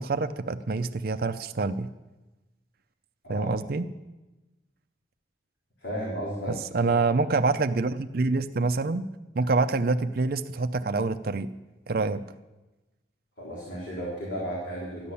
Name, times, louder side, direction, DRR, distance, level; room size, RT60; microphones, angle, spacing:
voice 1, 0.0-1.9 3.3-3.9 6.5-9.1 9.4-11.5 11.9-12.2, right 3 dB, 55° right, 9 dB, 0.5 m, -26 dB
voice 2, 5.8-6.6 13.4-15.1, equal, 80° left, -5 dB, 3.8 m, -34 dB
14.0 x 10.5 x 7.0 m, 1.1 s
head